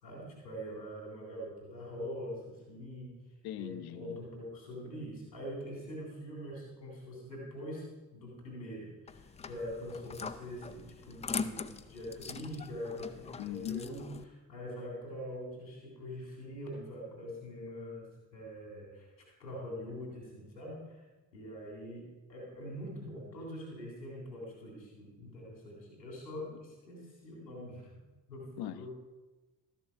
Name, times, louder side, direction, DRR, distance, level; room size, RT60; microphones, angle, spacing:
voice 1, 0.0-3.1 3.6-7.9 8.1-14.1 14.5-21.0 21.3-22.0 22.3-27.9 28.3-28.9, equal, 85° left, -1 dB, 3.4 m, -43 dB
voice 2, 3.4-4.2 13.4-13.8 28.6-28.9, left 12 dB, 50° left, 13 dB, 0.7 m, -40 dB
sound 1, 9.1-14.2, left 5 dB, 15° left, 0.4 m, -42 dB
12.5 x 7.2 x 5.7 m, 1.2 s
figure-of-eight pair, 45°, 50 cm